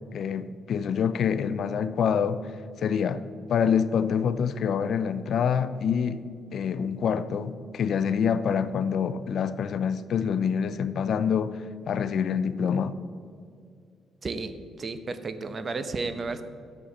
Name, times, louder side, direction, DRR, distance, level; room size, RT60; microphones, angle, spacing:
voice 1, 0.1-2.4 2.8-3.2 3.5-6.2 6.5-12.9, left 7 dB, 65° left, 0.5 m, -26 dB
voice 2, 14.2-14.5 14.8-16.4, right 3 dB, 40° right, 0.8 m, -32 dB
9.9 x 7.2 x 6.5 m
cardioid pair, 90°, 0 cm